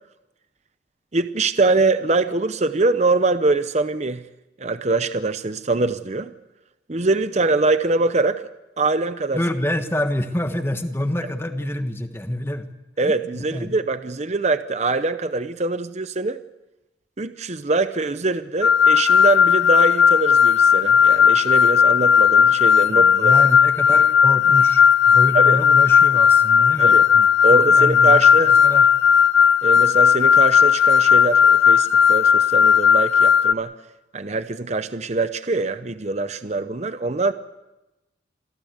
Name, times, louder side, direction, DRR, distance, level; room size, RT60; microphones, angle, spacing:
voice 1, 1.1-4.2 4.6-6.3 6.9-8.5 8.8-9.4 13.0-16.4 17.2-23.4 25.3-25.6 26.8-27.1 27.4-28.5 29.6-33.7 34.1-37.3, right 3 dB, 35° right, 11 dB, 0.7 m, -23 dB
voice 2, 9.3-12.6 13.0-13.7 22.9-28.9, left 1 dB, 15° left, 7 dB, 1.4 m, -27 dB
sound 1, 18.6-33.5, left 7 dB, 80° left, 0.8 m, -15 dB
27.0 x 16.0 x 8.1 m, 1.0 s
head